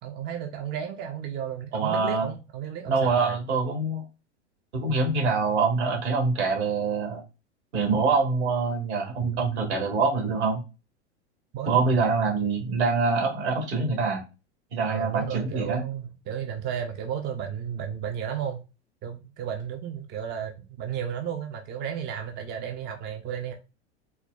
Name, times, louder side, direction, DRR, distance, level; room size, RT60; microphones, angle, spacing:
voice 1, 0.0-3.4 4.9-5.1 11.5-12.1 14.8-18.6 19.0-23.5, right 8 dB, 30° right, 0.5 m, -33 dB
voice 2, 1.7-2.3 2.9-4.0 4.7-7.2 7.7-10.6 11.7-14.2 14.7-15.8, right 4 dB, 70° right, 1.5 m, -25 dB
4.4 x 2.1 x 2.3 m
hypercardioid pair, 90°, 35 cm